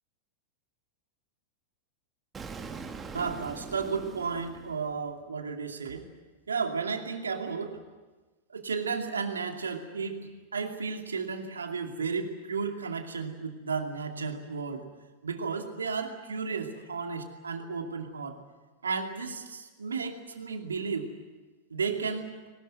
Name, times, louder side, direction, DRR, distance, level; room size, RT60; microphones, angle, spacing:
Explosion, 2.3-5.3, right 5 dB, 20° right, 2.2 m, -42 dB
voice 1, 3.1-6.1 6.5-7.8 8.5-14.8 15.2-18.4 18.8-21.1 21.7-22.3, right 5 dB, 80° right, 4 dB, 2.6 m, -33 dB
22.0 x 20.0 x 9.3 m, 1.2 s
figure-of-eight pair, 95°, 0 cm